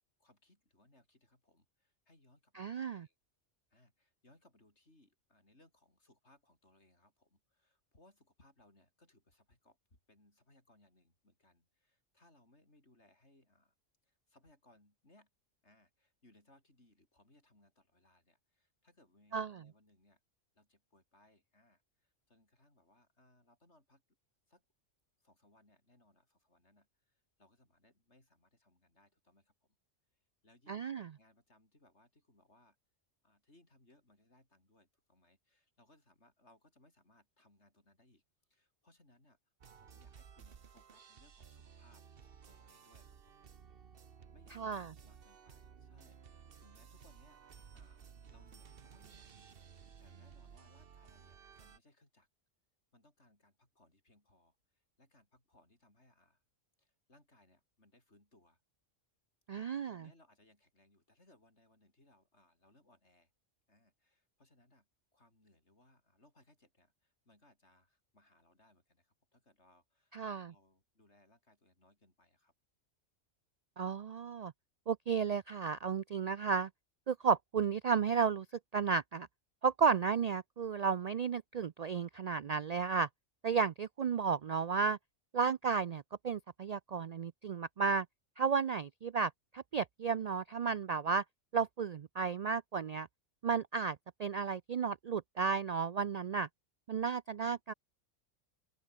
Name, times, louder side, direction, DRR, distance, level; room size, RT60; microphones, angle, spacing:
voice 1, 0.2-3.2 3.7-13.7 14.0-15.3 15.6-20.2 20.6-24.0 24.5-24.6 25.2-29.8 30.1-32.8 33.2-38.2 38.5-39.4 39.7-43.5 44.3-47.4 47.7-52.3 52.9-56.4 56.8-58.6 59.5-63.3 63.7-72.5 97.5-97.8, left 1 dB, 60° left, 6.9 m, -68 dB
voice 2, 2.6-3.1 19.3-19.6 30.7-31.1 44.5-44.9 59.5-60.1 70.1-70.5 73.8-74.5 74.9-76.7 77.1-78.5 78.7-79.3 79.6-83.1 83.4-85.0 85.3-88.1 88.4-91.2 91.5-93.1 93.4-96.5 96.9-97.7, right 6 dB, 90° right, 0.3 m, -33 dB
sound 1, 39.6-51.8, right 7 dB, 50° right, 1.2 m, -57 dB
open air
omnidirectional pair, 1.3 m